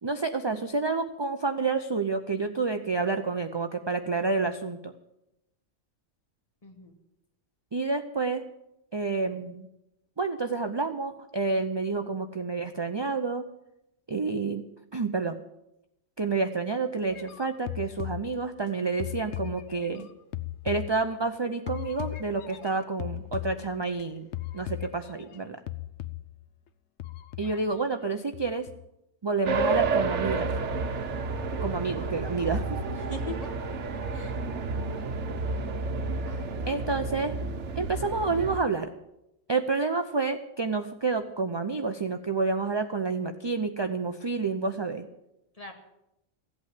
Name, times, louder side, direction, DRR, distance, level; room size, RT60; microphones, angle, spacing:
voice 1, 0.0-4.9 7.7-8.4 8.9-9.7 10.2-13.5 14.1-14.6 14.9-15.4 16.2-20.1 20.6-24.3 24.5-25.6 27.4-28.7 29.2-30.5 31.6-32.8 36.7-37.4 37.8-38.9 39.5-45.1, right 4 dB, 35° right, 7 dB, 0.4 m, -29 dB
voice 2, 6.6-6.9 27.4-27.6 32.9-33.5 34.1-34.4 36.3-36.8 45.6-45.7, left 2 dB, 25° left, 2 dB, 2.0 m, -42 dB
sound 1, 17.1-18.7 19.0-21.3 21.7-24.0 24.3-25.4 25.7-26.5 27.0-28.1 28.3-28.8, left 14 dB, 65° left, 0.9 m, -38 dB
sound 2, 29.5-38.6, right 3 dB, 60° right, 1.3 m, -30 dB
15.5 x 8.5 x 8.3 m, 0.89 s
omnidirectional pair, 1.4 m